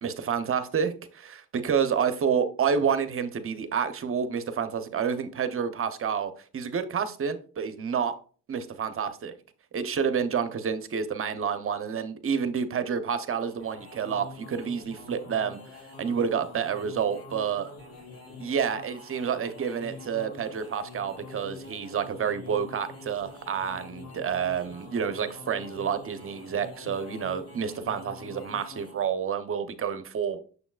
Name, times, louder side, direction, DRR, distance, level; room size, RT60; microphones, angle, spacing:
voice 1, 0.0-8.1 8.5-9.3 9.7-15.6 16.0-17.7 18.4-30.4, right 7 dB, 45° right, 0.8 m, -29 dB
sound 1, 13.3-29.1, left 3 dB, 55° left, 2.8 m, -46 dB
6.9 x 6.7 x 2.4 m
cardioid pair, 90°, 30 cm